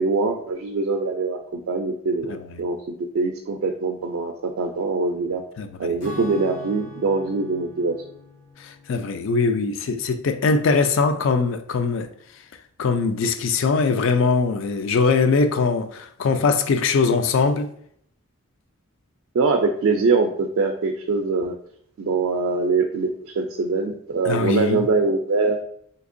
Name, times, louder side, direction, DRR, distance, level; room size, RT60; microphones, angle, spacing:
voice 1, 0.0-2.8 3.1-5.4 5.8-8.0 19.3-21.6 22.0-23.1 23.4-25.6, right 4 dB, 70° right, 0.3 m, -23 dB
Acoustic guitar / Strum, 6.0-10.8, left 3 dB, 85° left, 1.2 m, -43 dB
voice 2, 8.9-12.1 12.8-17.7 24.2-24.9, left 4 dB, 60° left, 0.3 m, -21 dB
3.5 x 2.8 x 2.5 m
head